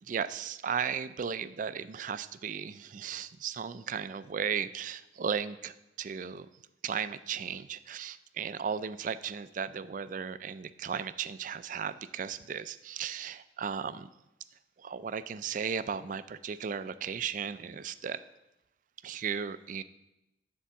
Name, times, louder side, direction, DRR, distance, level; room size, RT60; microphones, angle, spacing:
voice 1, 0.1-6.5 6.8-14.1 14.8-18.2 19.0-19.8, right 7 dB, 45° right, 14 dB, 0.3 m, -35 dB
10.0 x 4.6 x 7.0 m, 0.93 s
head